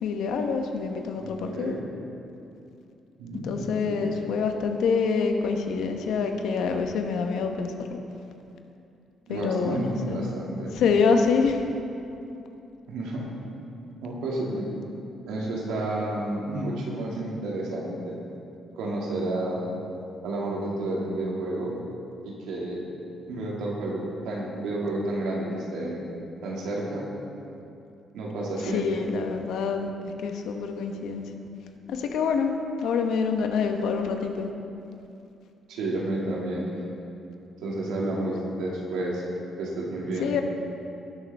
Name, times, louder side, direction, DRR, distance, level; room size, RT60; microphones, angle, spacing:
voice 1, 0.0-1.8 3.4-7.7 9.3-10.3 10.7-11.6 28.7-29.9 30.2-31.2 31.9-32.5 32.8-34.5 40.2-40.4, left 5 dB, 80° left, 5 dB, 0.9 m, -26 dB
voice 2, 1.2-1.8 3.2-4.1 9.3-10.7 12.9-13.3 14.0-14.7 15.3-18.2 18.8-19.6 20.2-21.7 22.2-22.8 23.3-26.0 26.4-27.1 28.1-29.1 35.7-36.7 37.6-39.2 39.6-40.3, right 2 dB, 90° right, -3 dB, 2.1 m, -30 dB
17.5 x 6.8 x 3.4 m, 2.7 s
cardioid pair, 90°, 0 cm